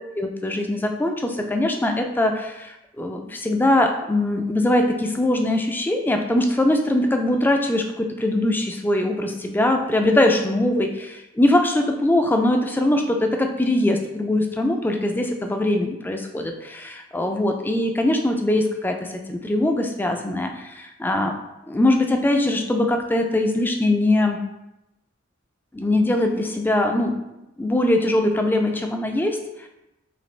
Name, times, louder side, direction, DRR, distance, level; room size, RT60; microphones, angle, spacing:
voice 1, 0.1-21.3 21.7-24.4 25.7-27.1 27.6-29.7, left 1 dB, 10° left, 4 dB, 0.3 m, -22 dB
5.1 x 2.4 x 3.2 m, 0.91 s
head